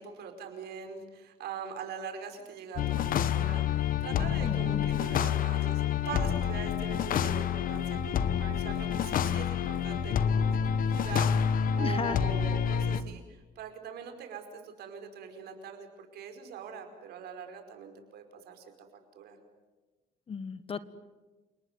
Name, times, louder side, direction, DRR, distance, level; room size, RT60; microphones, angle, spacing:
voice 1, 0.0-18.6 19.1-19.4, right 6 dB, 70° right, 5 dB, 5.1 m, -42 dB
sound 1, 2.8-13.0, left 8 dB, 55° left, 1.2 m, -28 dB
voice 2, 4.4-4.9 11.8-12.2 20.3-20.8, left 6 dB, 35° left, 14 dB, 1.3 m, -35 dB
29.5 x 19.5 x 9.6 m, 1.2 s
cardioid pair, 110°, 17 cm